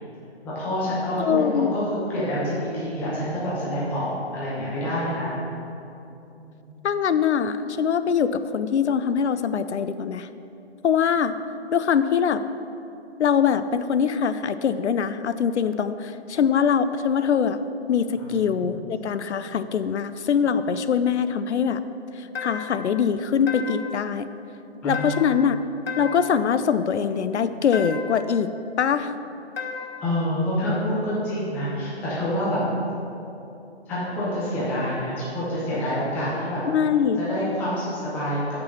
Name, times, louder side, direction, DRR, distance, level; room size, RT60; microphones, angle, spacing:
voice 1, 0.4-5.3 6.4-6.8 18.2-18.7 24.8-25.4 30.0-32.6 33.9-36.6 37.2-38.4, equal, 5° left, -9 dB, 0.8 m, -27 dB
voice 2, 1.2-1.7 6.8-10.3 10.8-11.3 11.7-12.4 13.2-17.6 17.9-21.8 22.2-24.3 24.8-25.6 26.0-28.5 28.8-29.1 36.7-37.2, left 7 dB, 80° left, 12 dB, 0.5 m, -23 dB
sound 1, 22.3-22.9 23.5-24.0 24.9-25.5 25.9-26.4 27.7-28.3 29.6-30.1, left 5 dB, 65° left, 1.0 m, -34 dB
6.1 x 6.0 x 6.1 m, 2.8 s
hypercardioid pair, 160°, 33 cm